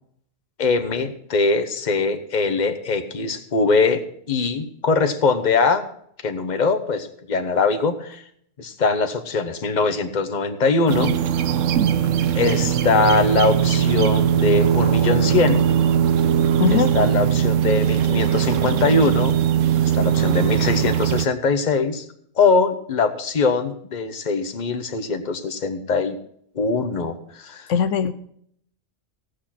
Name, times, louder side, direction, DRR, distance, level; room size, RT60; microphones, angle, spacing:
voice 1, 0.6-4.0 4.3-5.8 6.2-8.2 8.6-11.2 12.3-15.6 16.7-19.4 19.8-22.0 22.4-26.2 26.5-27.7, left 4 dB, 40° left, 8 dB, 1.1 m, -22 dB
sound 1, 10.9-21.3, right 9 dB, 90° right, 1.0 m, -20 dB
voice 2, 16.6-16.9 27.7-28.1, left 7 dB, 80° left, 12 dB, 1.0 m, -20 dB
17.0 x 6.6 x 5.9 m, 0.67 s
omnidirectional pair, 1.3 m